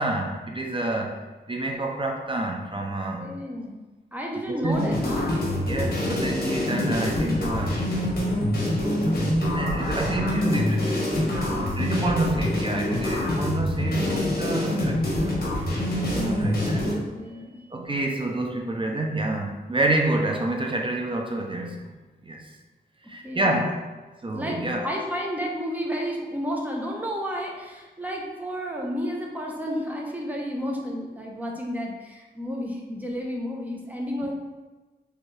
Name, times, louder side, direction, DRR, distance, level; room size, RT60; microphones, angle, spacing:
voice 1, 0.0-3.3 4.5-4.9 5.6-7.9 9.1-11.1 11.4-15.6 16.1-16.9 17.7-21.9 22.3-22.4 23.1-23.8 24.2-24.9, right 2 dB, 30° right, 1 dB, 0.5 m, -28 dB
voice 2, 3.2-3.8 4.1-5.4 17.1-17.6 23.2-23.5 24.3-34.3, equal, 10° right, -2 dB, 0.9 m, -31 dB
sound 1, 4.7-16.9, left 1 dB, 60° left, 1.3 m, -26 dB
4.5 x 3.4 x 3.2 m, 1.2 s
wide cardioid pair, 100°, 18 cm